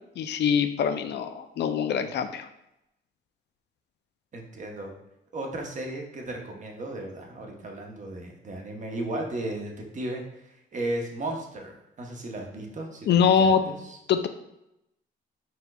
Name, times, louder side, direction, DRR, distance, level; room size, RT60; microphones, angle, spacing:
voice 1, 0.2-2.5 13.1-13.6 14.1-14.3, left 7 dB, 60° left, 9 dB, 0.4 m, -23 dB
voice 2, 4.3-4.9 5.3-14.0, right 1 dB, 40° right, 1 dB, 0.9 m, -35 dB
4.3 x 3.8 x 2.3 m, 0.85 s
cardioid pair, 90°, 20 cm